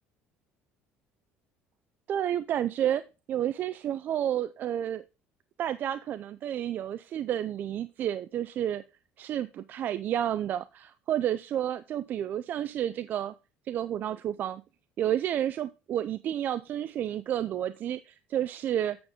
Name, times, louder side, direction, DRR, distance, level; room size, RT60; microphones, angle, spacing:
voice 1, 2.1-3.0 3.3-5.0 5.6-8.8 9.2-13.3 13.7-14.6 15.0-19.0, right 10 dB, 45° right, 14 dB, 0.4 m, -30 dB
8.6 x 6.6 x 3.6 m, 0.30 s
cardioid pair, 120°, 4 cm